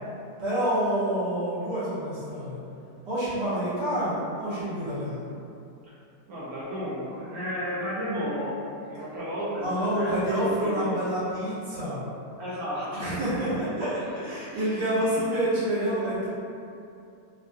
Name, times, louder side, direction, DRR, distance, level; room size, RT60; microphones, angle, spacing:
voice 1, 0.4-2.6 3.1-5.2 9.6-12.0 12.9-16.3, right 1 dB, 80° right, -12 dB, 1.7 m, -28 dB
voice 2, 6.3-11.0 12.4-13.2 14.4-14.9 15.1-15.2, equal, 65° right, -10 dB, 1.2 m, -33 dB
3.7 x 2.2 x 2.6 m, 2.6 s
omnidirectional pair, 1.8 m